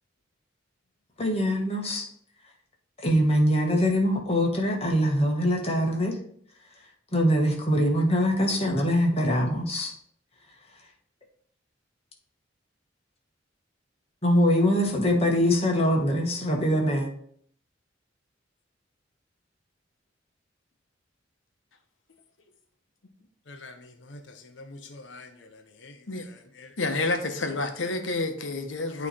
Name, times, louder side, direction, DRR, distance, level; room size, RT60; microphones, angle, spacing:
voice 1, 1.2-2.1 3.0-6.1 7.1-9.9 14.2-17.1, equal, 35° left, 1.4 m, -23 dB
voice 2, 23.5-26.0 26.6-26.7, left 2 dB, 70° left, 0.8 m, -46 dB
voice 3, 26.8-29.1, left 2 dB, 90° left, 1.0 m, -29 dB
8.7 x 3.2 x 4.3 m
head